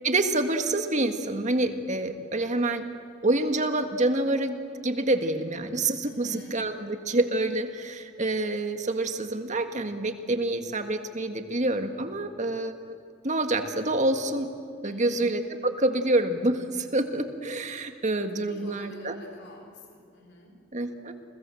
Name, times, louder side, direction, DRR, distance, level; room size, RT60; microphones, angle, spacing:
voice 1, 0.0-2.8 3.2-13.0 13.2-14.5 14.8-19.2 20.7-21.1, right 2 dB, 40° right, 7 dB, 1.9 m, -27 dB
voice 2, 6.1-6.6 14.8-15.3 18.3-20.6, equal, 60° left, 3 dB, 4.1 m, -47 dB
30.0 x 22.5 x 7.8 m, 2.4 s
head